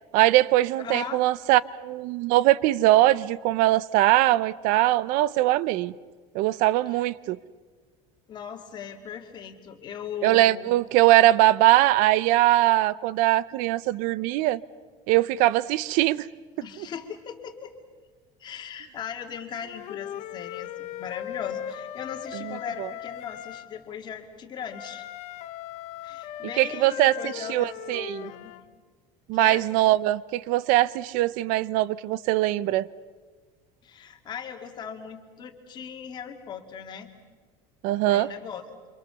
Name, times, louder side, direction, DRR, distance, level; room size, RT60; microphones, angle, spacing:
voice 1, 0.1-5.9 6.3-7.4 10.2-14.6 15.1-16.3 22.4-22.9 26.6-28.3 29.3-32.8 37.8-38.3, right 16 dB, 60° right, 0.7 m, -21 dB
voice 2, 0.7-1.2 6.9-7.1 8.3-10.7 16.6-17.7 18.4-25.1 26.0-28.5 29.3-29.7 33.8-37.1 38.1-38.6, left 7 dB, 30° left, 2.3 m, -38 dB
Wind instrument woodwind instrument, 19.5-23.7 24.7-28.6, left 12 dB, 45° left, 1.1 m, -38 dB
28.5 x 26.5 x 7.0 m
cardioid pair, 175°, 16 cm